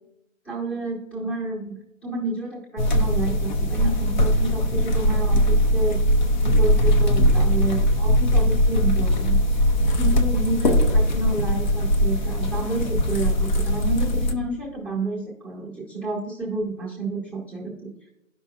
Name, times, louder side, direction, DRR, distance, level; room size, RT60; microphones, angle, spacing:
voice 1, 0.4-6.0 6.4-9.4 10.0-17.9, right 2 dB, 5° left, -6 dB, 0.9 m, -30 dB
sound 1, 2.8-14.3, equal, 35° left, 0.6 m, -20 dB
11.5 x 5.3 x 2.4 m, 0.88 s
hypercardioid pair, 145°, 39 cm